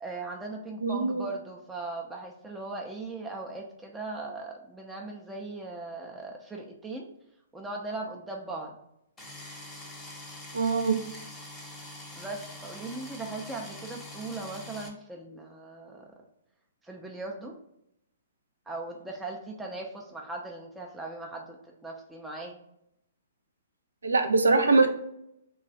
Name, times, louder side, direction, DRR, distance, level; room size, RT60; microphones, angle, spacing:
voice 1, 0.0-7.1 7.5-8.7 12.1-16.1 16.8-17.5 18.7-21.6 21.8-22.6, right 2 dB, 10° right, -1 dB, 0.5 m, -39 dB
voice 2, 0.8-1.3 10.5-11.0 24.0-24.9, right 3 dB, 85° right, 6 dB, 0.5 m, -22 dB
sound 1, 9.2-14.9, left 2 dB, 10° left, 0.9 m, -44 dB
3.2 x 2.3 x 3.8 m, 0.78 s
hypercardioid pair, 125°, 0 cm